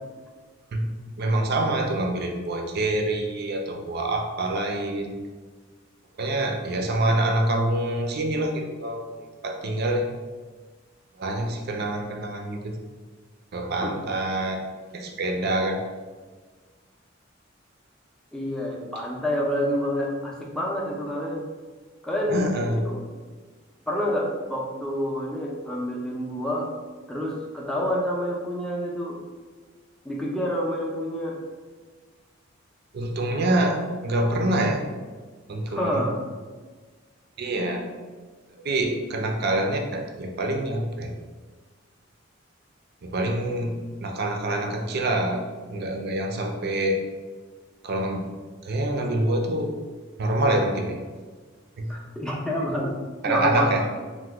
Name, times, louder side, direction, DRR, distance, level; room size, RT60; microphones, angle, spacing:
voice 1, 1.2-5.1 6.2-10.1 11.2-12.8 13.5-14.6 14.9-15.8 22.3-22.8 32.9-34.8 35.5-36.0 37.4-37.8 38.6-41.1 43.0-45.4 45.7-47.0 47.8-48.3 48.6-49.8 50.2-51.0 51.8-51.9 53.2-53.8, right 1 dB, 55° right, 3 dB, 0.4 m, -26 dB
voice 2, 18.3-21.5 22.0-23.0 23.9-26.7 27.1-29.2 30.0-31.4 35.7-36.1 51.9-52.9 53.2-53.7, equal, 5° left, -3 dB, 0.5 m, -28 dB
2.9 x 2.1 x 3.4 m, 1.4 s
head